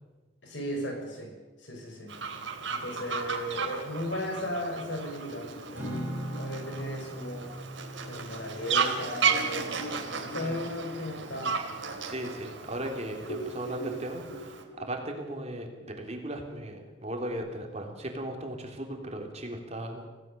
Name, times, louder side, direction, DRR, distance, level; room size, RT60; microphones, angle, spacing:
voice 1, 0.4-1.3 1.6-2.1 2.7-7.5 8.0-11.6, left 1 dB, 65° left, 3 dB, 5.9 m, -36 dB
Fowl, 2.1-14.6, right 5 dB, 70° right, 3.2 m, -34 dB
sound 1, 5.3-8.4 8.8-8.9 9.3-12.9 13.2-17.3, equal, 80° left, 4.1 m, -45 dB
Acoustic guitar / Strum, 5.7-10.2, equal, 10° right, 5.3 m, -40 dB
voice 2, 12.0-20.1, right 1 dB, 35° right, 2 dB, 3.6 m, -37 dB
26.5 x 17.5 x 7.0 m, 1.3 s
head